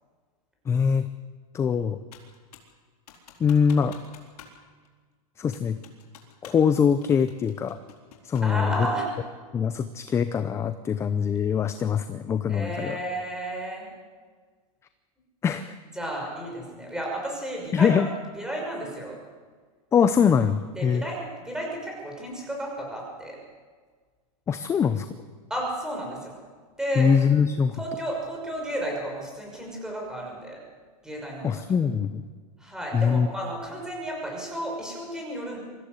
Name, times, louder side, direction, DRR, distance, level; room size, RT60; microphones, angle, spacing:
voice 1, 0.7-1.1 1.5-2.0 3.4-4.0 5.4-5.8 6.4-7.8 8.2-8.9 9.5-13.0 15.4-15.8 17.7-18.1 19.9-21.0 24.5-25.1 27.0-27.8 31.4-32.2 32.9-33.3, left 7 dB, 15° left, 11 dB, 0.6 m, -23 dB
Computer keyboard, 2.1-2.7 3.1-4.6 4.8-4.9 5.5-6.7 7.0-8.6, left 7 dB, 85° left, 4.3 m, -49 dB
voice 2, 8.4-9.1 12.5-13.9 16.0-18.0 18.4-19.2 20.8-23.4 25.5-26.4 26.8-27.1 27.7-30.6 31.0-31.7 32.6-35.6, right 1 dB, 5° right, -1 dB, 6.0 m, -32 dB
24.0 x 15.0 x 8.1 m, 1.5 s
supercardioid pair, 150°, 19 cm